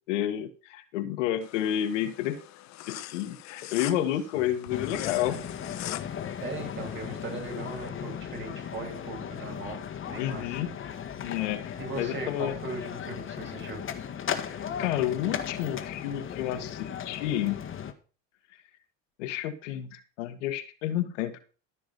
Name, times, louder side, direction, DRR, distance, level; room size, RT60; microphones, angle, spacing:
voice 1, 0.1-2.4 2.9-5.4 10.2-10.7 11.2-12.5 14.8-17.6 19.2-21.4, left 12 dB, 90° left, 8 dB, 1.6 m, -30 dB
sound 1, 1.4-7.9, left 15 dB, 50° left, 0.9 m, -43 dB
sound 2, 4.7-17.9, left 8 dB, 35° left, 1.6 m, -37 dB
voice 2, 6.4-9.8 10.0-10.4 11.8-13.8, right 3 dB, 30° right, 2 dB, 5.7 m, -38 dB
14.0 x 6.2 x 5.4 m, 0.38 s
supercardioid pair, 100°, 35 cm